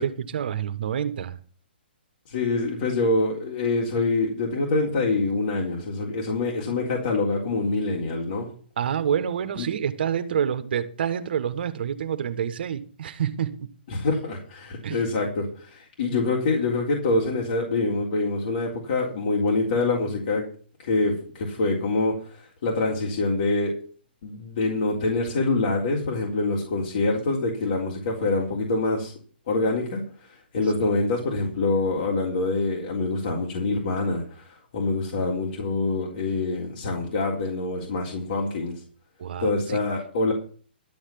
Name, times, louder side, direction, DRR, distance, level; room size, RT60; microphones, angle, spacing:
voice 1, 0.0-1.4 8.8-13.7 14.8-15.0 39.2-39.8, right 8 dB, 60° right, 1.3 m, -27 dB
voice 2, 2.3-8.5 9.6-9.7 13.9-20.5 20.8-23.7 24.2-29.1 29.5-30.0 30.3-38.8 39.4-40.3, left 3 dB, 60° left, 3.8 m, -25 dB
13.0 x 6.5 x 7.7 m
hypercardioid pair, 150°, 6 cm